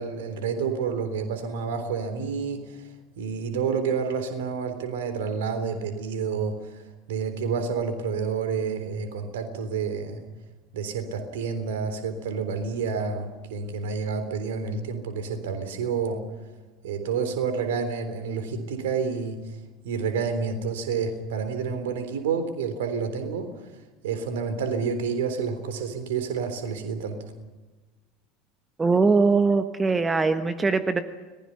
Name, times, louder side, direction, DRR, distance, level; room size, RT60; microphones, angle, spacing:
voice 1, 0.0-2.9 3.2-6.8 7.1-10.2 10.7-16.2 16.8-19.4 19.8-23.5 24.0-27.2, right 5 dB, 65° right, 8 dB, 3.6 m, -29 dB
voice 2, 28.8-31.0, right 4 dB, 15° right, 10 dB, 1.3 m, -21 dB
30.0 x 20.0 x 5.8 m, 1.2 s
figure-of-eight pair, 75°, 0 cm